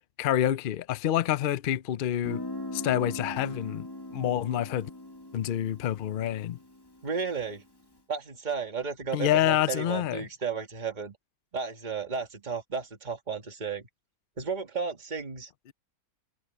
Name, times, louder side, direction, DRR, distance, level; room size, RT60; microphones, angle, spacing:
voice 1, 0.2-2.4 2.7-4.9 5.3-6.6 9.1-10.2, left 11 dB, 80° left, 0.4 m, -27 dB
Guitar, 2.2-7.8, left 1 dB, 15° left, 1.8 m, -41 dB
voice 2, 7.0-7.6 8.1-11.2 11.5-13.9 14.4-15.5, right 5 dB, 30° right, 1.8 m, -33 dB
omnidirectional pair, 1.7 m